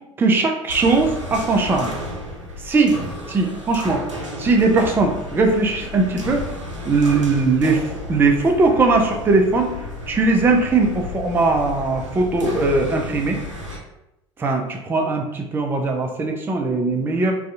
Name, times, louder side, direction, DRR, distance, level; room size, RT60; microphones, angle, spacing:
voice 1, 0.2-1.9 2.6-3.0 3.3-4.0 4.4-6.4 6.8-7.8 8.1-9.7 10.1-13.4 14.4-17.3, right 3 dB, 15° right, 2 dB, 0.3 m, -19 dB
sound 1, 0.7-13.8, left 1 dB, 90° right, 0.5 m, -33 dB
2.5 x 2.3 x 2.4 m, 0.90 s
figure-of-eight pair, 65°, 15 cm